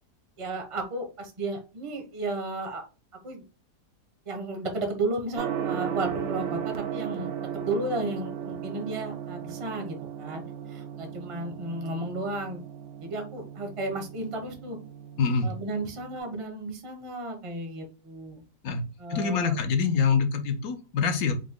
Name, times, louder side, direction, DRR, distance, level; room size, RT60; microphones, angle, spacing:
voice 1, 0.4-2.8 3.2-3.4 4.3-10.4 10.7-12.6 13.0-14.8 15.4-18.4 19.0-19.6, right 2 dB, 30° right, 4 dB, 0.6 m, -33 dB
Gong, 5.4-16.2, right 9 dB, 65° right, 0.9 m, -36 dB
voice 2, 15.2-15.5 18.6-18.8 19.1-21.3, left 5 dB, 65° left, 7 dB, 1.2 m, -25 dB
4.9 x 2.2 x 3.6 m, 0.33 s
omnidirectional pair, 1.8 m